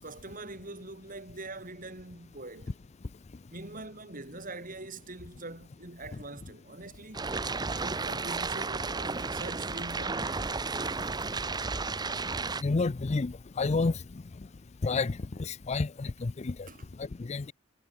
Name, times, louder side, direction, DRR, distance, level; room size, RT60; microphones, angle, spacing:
voice 1, 0.0-2.7 3.5-7.3 7.7-10.6 16.7-16.9, right 2 dB, 45° right, 5.0 m, -43 dB
sound 1, 7.1-12.6, right 4 dB, 20° right, 0.8 m, -33 dB
voice 2, 12.6-14.0 14.8-16.7 17.0-17.5, left 3 dB, 35° left, 0.5 m, -30 dB
head